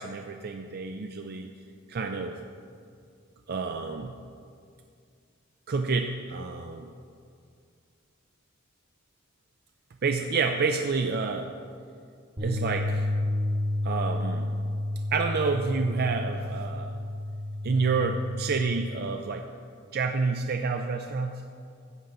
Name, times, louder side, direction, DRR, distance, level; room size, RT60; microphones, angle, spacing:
voice 1, 0.0-1.5 1.9-2.4 3.5-4.2 5.7-6.9 10.0-11.5 12.4-13.1 13.8-14.5 15.1-17.0 17.6-19.5 19.9-21.4, right 4 dB, 50° right, 5 dB, 0.4 m, -29 dB
Bass guitar, 12.4-18.6, left 1 dB, 25° right, 1.3 m, -31 dB
13.5 x 8.6 x 3.9 m, 2.3 s
head